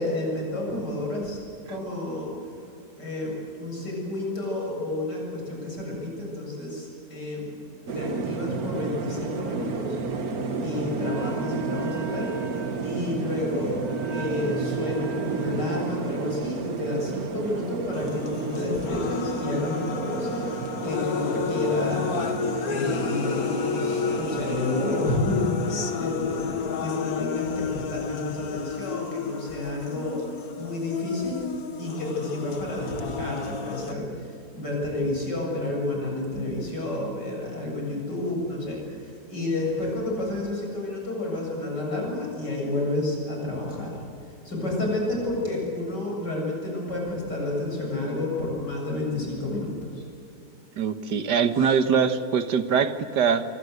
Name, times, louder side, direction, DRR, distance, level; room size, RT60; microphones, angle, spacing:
voice 1, 0.0-1.4 1.7-2.3 3.0-7.5 7.9-10.0 10.6-12.3 12.8-22.3 22.7-31.4 31.8-34.3 34.5-44.0 44.4-50.0 51.6-51.7, left 2 dB, 90° left, -1 dB, 8.0 m, -30 dB
sound 1, 7.9-25.2, right 4 dB, 60° right, 1.8 m, -32 dB
Wind instrument woodwind instrument, 11.0-16.5, right 6 dB, 30° right, 0.9 m, -38 dB
sound 2, 17.9-33.9, left 6 dB, 60° left, 1.9 m, -31 dB
voice 2, 50.8-53.4, right 6 dB, 85° right, 10 dB, 1.9 m, -23 dB
26.5 x 23.5 x 8.0 m, 2.7 s
omnidirectional pair, 1.8 m